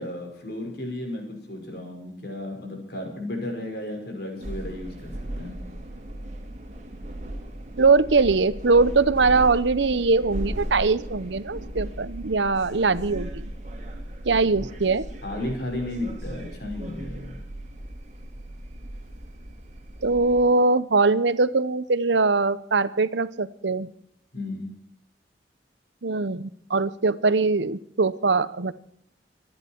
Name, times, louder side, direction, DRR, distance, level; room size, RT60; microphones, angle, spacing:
voice 1, 0.0-5.6 15.2-17.4 24.3-24.7, left 1 dB, 60° left, 3 dB, 5.7 m, -34 dB
sound 1, 4.4-20.4, right 1 dB, 40° right, 2.8 m, -37 dB
voice 2, 7.8-13.5 14.2-15.1 20.0-23.9 26.0-28.7, right 3 dB, 85° right, 15 dB, 0.9 m, -22 dB
25.5 x 10.5 x 4.6 m, 0.69 s
head